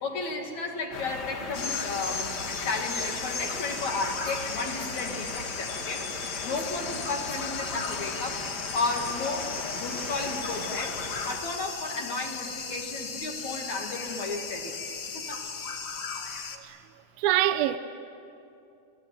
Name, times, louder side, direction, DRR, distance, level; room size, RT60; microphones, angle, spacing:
voice 1, 0.0-2.3 2.6-6.0 6.4-8.4 8.7-11.0 11.2-14.8 15.1-15.4, left 3 dB, 55° left, 2.6 m, -33 dB
sound 1, 0.9-11.4, left 3 dB, 90° left, 0.9 m, -38 dB
sound 2, 1.5-16.6, left 5 dB, 75° left, 1.2 m, -36 dB
voice 2, 17.2-17.8, right 13 dB, 80° right, 2.3 m, -24 dB
27.5 x 18.5 x 9.6 m
omnidirectional pair, 4.8 m